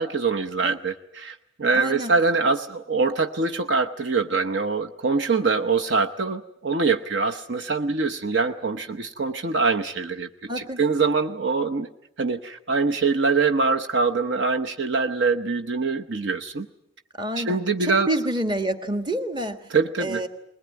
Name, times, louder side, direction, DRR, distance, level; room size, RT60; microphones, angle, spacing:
voice 1, 0.0-10.3 10.6-11.9 12.2-16.7 17.4-18.1 19.7-20.2, right 4 dB, 60° right, 6 dB, 0.9 m, -24 dB
voice 2, 1.7-2.1 10.5-10.8 17.2-19.7 20.0-20.3, right 1 dB, 20° right, 8 dB, 1.5 m, -28 dB
21.5 x 20.5 x 9.4 m, 0.82 s
head